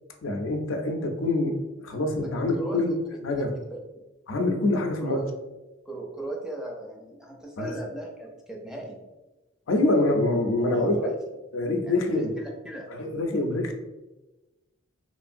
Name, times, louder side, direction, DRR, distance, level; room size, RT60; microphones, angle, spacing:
voice 1, 0.2-1.6 1.8-2.9 3.2-3.5 4.3-5.2 7.6-7.7 9.7-11.1 11.5-12.3 13.0-13.7, left 2 dB, 70° left, 3 dB, 0.4 m, -25 dB
voice 2, 2.2-3.8 5.0-5.3 5.9-9.0 10.6-11.2 11.8-12.9, right 1 dB, 5° right, -1 dB, 0.4 m, -38 dB
3.0 x 2.5 x 2.5 m, 1.1 s
head